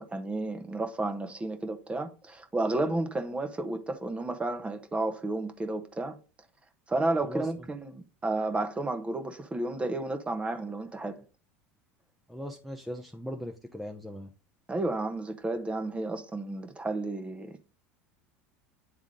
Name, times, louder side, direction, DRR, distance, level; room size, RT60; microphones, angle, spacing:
voice 1, 0.0-6.2 6.9-11.2 14.7-17.6, right 2 dB, 15° right, 1.2 m, -32 dB
voice 2, 7.2-7.7 12.3-14.3, equal, ahead, 0.8 m, -39 dB
9.4 x 3.6 x 3.8 m
hypercardioid pair, 90°, 7 cm